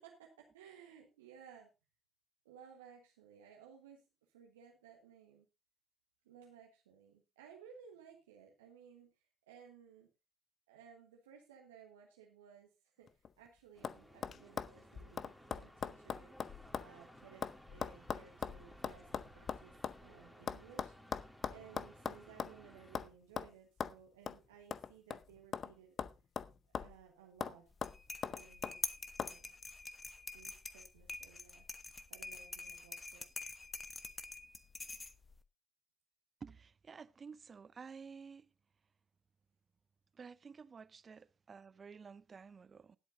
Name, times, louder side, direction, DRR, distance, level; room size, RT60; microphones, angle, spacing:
voice 1, 0.0-1.7 2.4-5.5 6.2-10.1 10.7-16.5 16.8-26.0 26.7-27.7 28.3-29.6 30.3-31.7 32.1-33.2, right 8 dB, 75° right, 1.4 m, -59 dB
sound 1, 13.1-13.5 13.8-14.0 14.2-16.9 17.2-20.0 20.5-22.6 23.0-23.1 23.4-23.5 23.8-24.0 24.3-24.4 24.7-25.7 26.0-27.0 27.4-27.6 27.8-28.8 29.2-29.3, left 7 dB, 45° left, 0.7 m, -41 dB
sound 2, 13.7-23.1, equal, 5° left, 2.8 m, -59 dB
sound 3, 27.7-35.4, left 3 dB, 25° left, 1.1 m, -46 dB
voice 2, 36.4-38.5 40.2-43.0, right 5 dB, 35° right, 0.6 m, -52 dB
19.0 x 8.0 x 2.7 m
figure-of-eight pair, 45°, 0 cm